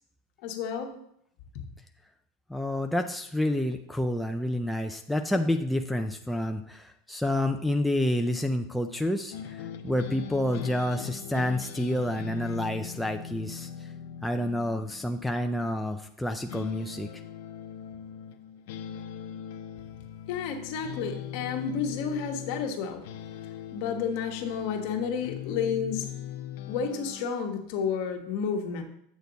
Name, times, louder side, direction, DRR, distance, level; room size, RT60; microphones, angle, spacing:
voice 1, 0.4-0.9 20.3-23.0 23.7-26.0 26.7-28.8, left 6 dB, 60° left, 3 dB, 1.4 m, -31 dB
voice 2, 2.5-13.7 14.2-17.1, left 1 dB, ahead, 4 dB, 0.4 m, -29 dB
sound 1, 9.3-16.2 16.5-27.2, left 9 dB, 75° left, 0.8 m, -40 dB
8.3 x 6.3 x 4.0 m, 0.71 s
supercardioid pair, 145°, 0 cm